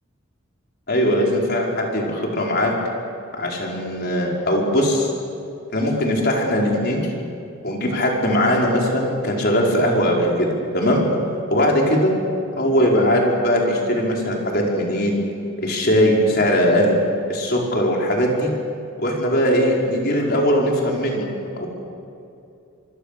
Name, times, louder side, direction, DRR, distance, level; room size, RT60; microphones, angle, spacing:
voice 1, 0.9-2.7 3.4-5.1 5.7-7.1 7.6-11.1 11.5-12.2 12.6-15.2 15.6-17.0 17.3-18.5 19.0-21.3 21.6-21.7, equal, 45° left, -1 dB, 4.9 m, -20 dB
26.0 x 24.5 x 6.8 m, 2.7 s
head